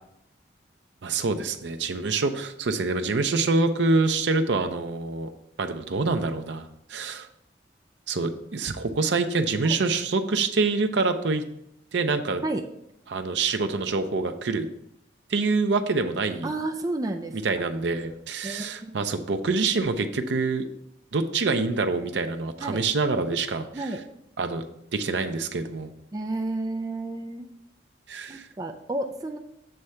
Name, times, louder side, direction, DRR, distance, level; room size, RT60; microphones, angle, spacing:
voice 1, 1.0-5.3 5.6-7.3 8.1-11.4 11.9-12.4 13.1-14.7 15.3-16.5 17.4-20.6 21.1-23.7 24.4-24.6 24.9-25.9 28.1-28.5, right 3 dB, 80° right, 7 dB, 0.6 m, -26 dB
voice 2, 16.4-17.6 18.4-19.0 22.6-22.8 23.7-24.0 26.1-27.5 28.3-29.4, right 2 dB, 20° right, 3 dB, 0.4 m, -31 dB
7.8 x 3.3 x 5.6 m, 0.78 s
head